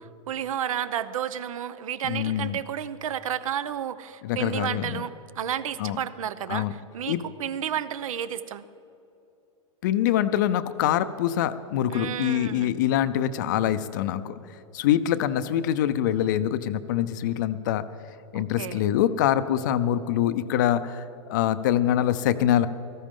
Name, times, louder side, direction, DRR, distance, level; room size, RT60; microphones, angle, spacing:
voice 1, 0.3-8.7 11.9-12.7 18.3-18.8, right 9 dB, 85° right, 15 dB, 0.7 m, -31 dB
voice 2, 2.0-2.6 4.2-5.1 5.8-6.0 6.5-6.7 7.1-7.2 9.8-14.3 14.7-17.9 18.3-21.0 21.3-22.7, left 11 dB, 35° left, 13 dB, 0.5 m, -24 dB
18.0 x 14.5 x 3.7 m, 2.8 s
supercardioid pair, 175°, 17 cm